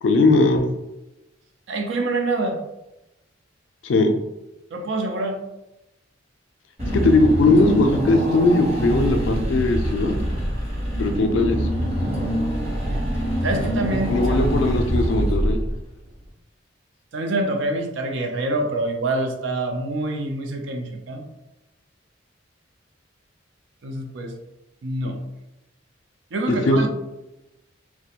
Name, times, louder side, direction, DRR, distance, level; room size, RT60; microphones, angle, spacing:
voice 1, 0.0-0.7 3.8-4.1 6.9-10.1 11.0-11.6 14.1-15.6 26.5-26.9, left 2 dB, 70° left, 6 dB, 0.4 m, -19 dB
voice 2, 1.7-2.6 4.7-5.4 12.9-13.0 13.4-14.4 17.1-21.3 23.8-24.3 24.8-25.2 26.3-26.9, right 2 dB, 70° right, 4 dB, 0.4 m, -26 dB
Car / Engine, 6.8-16.0, equal, 35° right, 0.9 m, -24 dB
2.4 x 2.1 x 2.8 m, 0.95 s
head